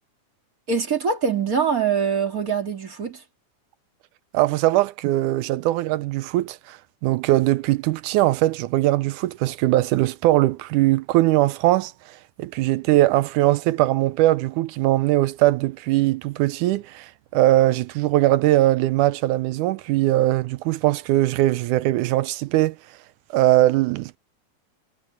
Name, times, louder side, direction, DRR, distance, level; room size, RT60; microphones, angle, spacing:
voice 1, 0.7-3.2, right 6 dB, 25° right, 3.0 m, -23 dB
voice 2, 4.3-11.9 12.4-22.8 23.3-24.2, right 16 dB, 80° right, 1.9 m, -20 dB
omnidirectional pair, 3.9 m